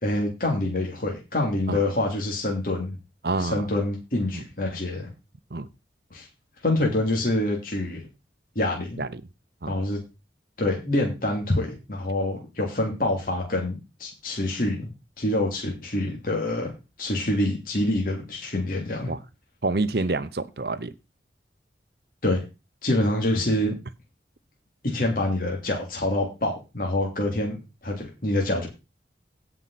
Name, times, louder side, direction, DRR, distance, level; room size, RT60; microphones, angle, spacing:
voice 1, 0.0-3.0 3.4-5.1 6.1-6.3 6.6-8.0 8.5-9.0 9.7-10.0 10.6-14.9 15.2-16.7 17.0-19.1 22.2-22.4 22.8-23.7 24.8-27.6 27.8-28.7, left 1 dB, 50° left, 0 dB, 3.0 m, -26 dB
voice 2, 3.2-3.7 4.3-4.4 5.5-5.7 9.0-9.2 9.6-9.7 19.1-19.2 19.6-20.9, right 3 dB, 60° right, 14 dB, 0.8 m, -27 dB
17.0 x 5.7 x 4.2 m, 0.27 s
head